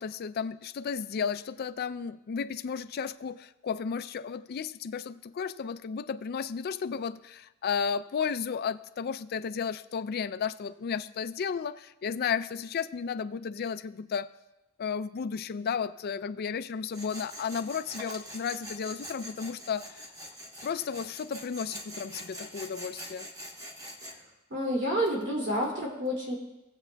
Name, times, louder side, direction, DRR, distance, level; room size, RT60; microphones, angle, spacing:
voice 1, 0.0-14.3 14.8-20.0 20.6-23.3, left 6 dB, 45° left, 13 dB, 0.3 m, -33 dB
Tools, 16.9-24.2, equal, 15° right, 1.1 m, -44 dB
voice 2, 24.5-26.3, equal, 55° right, -3 dB, 2.6 m, -29 dB
18.5 x 7.9 x 2.3 m, 0.96 s
head